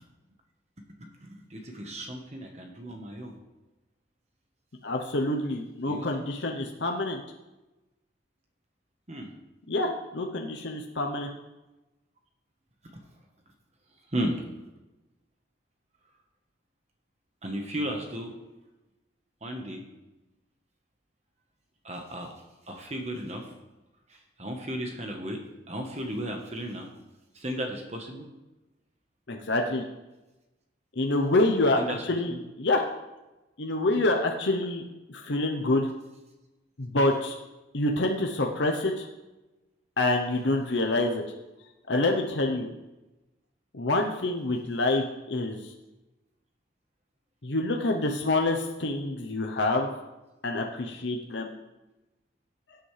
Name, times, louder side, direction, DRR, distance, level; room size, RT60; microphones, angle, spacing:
voice 1, 1.2-3.4 5.9-6.1 9.1-9.3 14.1-14.3 17.4-18.3 19.4-19.8 21.8-22.3 22.7-23.5 24.1-25.4 25.7-26.9 27.3-28.3 31.8-32.4, equal, 35° right, 3 dB, 1.2 m, -34 dB
voice 2, 4.8-7.2 9.7-11.3 29.3-29.8 31.0-32.8 33.6-34.8 35.1-35.9 36.8-37.4 37.7-39.1 40.0-41.2 41.9-42.7 43.7-45.7 47.4-49.9 50.4-51.5, left 2 dB, 65° left, 2 dB, 0.8 m, -27 dB
17.0 x 8.0 x 3.3 m, 1.1 s
head